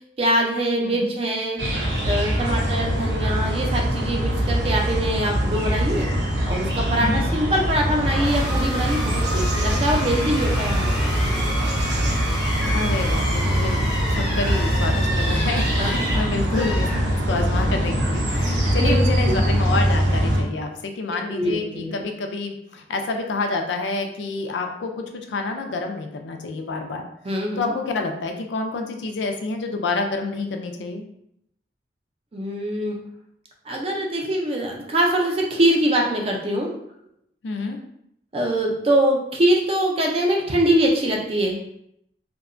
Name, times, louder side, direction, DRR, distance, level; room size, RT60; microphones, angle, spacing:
voice 1, 0.2-1.6 2.0-6.1 6.5-11.5 15.8-15.9 18.5-19.0 19.3-19.4 21.3-21.9 27.2-27.7 32.3-33.0 33.7-36.7 38.3-41.6, right 1 dB, 35° right, 0 dB, 0.5 m, -23 dB
voice 2, 0.8-1.1 7.0-7.3 12.7-16.9 17.3-27.0 27.6-31.0 37.4-37.8, left 3 dB, 90° left, 4 dB, 0.4 m, -28 dB
sound 1, 1.6-20.4, equal, 80° right, 0.6 m, -23 dB
sound 2, 8.0-17.6, equal, ahead, 0.8 m, -31 dB
2.7 x 2.2 x 2.5 m, 0.75 s
head